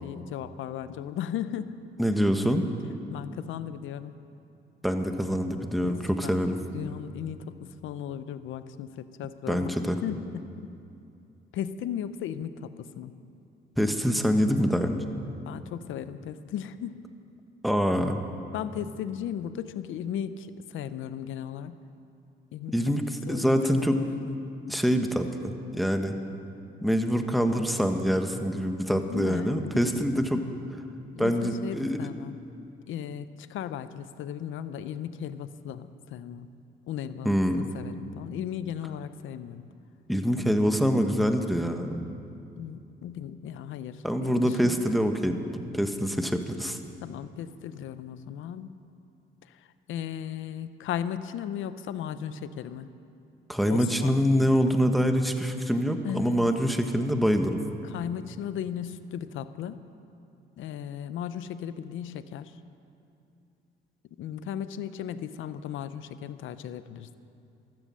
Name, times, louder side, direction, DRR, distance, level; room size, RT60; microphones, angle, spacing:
voice 1, 0.0-1.8 3.1-4.2 5.8-5.9 6.2-6.4 6.7-7.5 7.8-9.7 10.0-10.2 10.6-10.7 11.5-13.1 15.5-16.9 18.5-21.7 22.5-22.7 23.3-23.9 24.3-24.4 28.9-29.9 31.1-32.4 32.9-36.5 36.9-37.3 37.7-39.6 42.6-44.7 47.0-48.7 49.9-52.9 53.7-54.1 56.0-56.5 57.8-59.8 60.6-62.5 64.2-67.1, left 9 dB, 80° left, 13 dB, 0.7 m, -36 dB
voice 2, 2.0-2.6 4.8-6.6 9.5-10.0 13.8-15.1 17.6-18.2 22.7-24.0 24.7-26.1 26.8-30.4 31.2-32.1 37.2-37.7 40.1-42.0 44.0-45.4 45.7-46.8 53.5-57.6, equal, ahead, 6 dB, 1.2 m, -25 dB
14.0 x 13.0 x 7.6 m, 2.6 s
cardioid pair, 90°, 20 cm